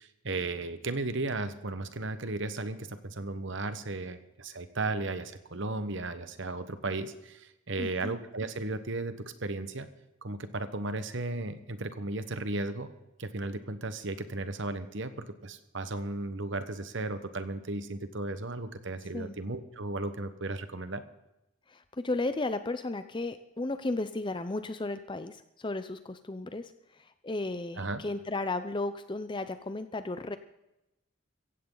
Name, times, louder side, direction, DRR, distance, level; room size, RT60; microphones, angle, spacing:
voice 1, 0.0-9.9 10.2-12.9 13.2-21.0 27.8-28.0, right 2 dB, 55° right, 11 dB, 1.2 m, -35 dB
voice 2, 7.8-8.1 19.1-19.4 21.7-30.4, left 2 dB, 20° left, 10 dB, 0.6 m, -34 dB
16.5 x 15.5 x 3.9 m, 0.91 s
head